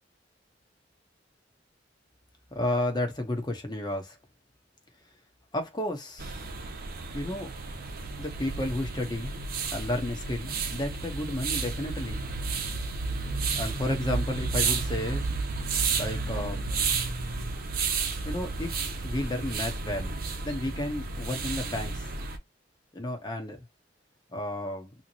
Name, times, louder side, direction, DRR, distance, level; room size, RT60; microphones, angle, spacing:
voice 1, 2.5-4.2 5.5-6.4 7.1-7.5 8.2-9.4 9.7-12.3 13.5-15.3 15.9-16.7 18.2-22.1 22.9-23.6 24.3-24.9, left 1 dB, 25° left, 1.0 m, -32 dB
sound 1, 6.2-22.4, right 4 dB, 50° right, 0.8 m, -32 dB
3.6 x 3.0 x 2.8 m
head